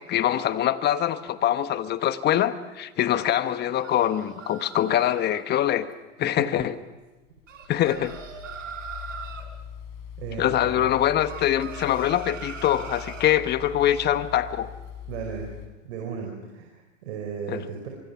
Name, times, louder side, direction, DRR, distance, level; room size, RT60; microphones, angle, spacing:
voice 1, 0.0-5.9 6.2-6.8 7.7-8.1 10.4-14.7 17.5-17.6, left 11 dB, 25° left, 12 dB, 1.2 m, -24 dB
sound 1, 3.4-5.4 7.5-9.5 11.2-13.4, right 6 dB, 85° right, 4.2 m, -41 dB
sound 2, 5.9-15.7, left 8 dB, 45° left, 5.2 m, -42 dB
voice 2, 10.2-10.9 15.1-15.5 15.8-17.9, right 6 dB, 60° right, 1 dB, 5.2 m, -35 dB
25.0 x 24.0 x 6.0 m, 1.1 s
hypercardioid pair, 120°, 38 cm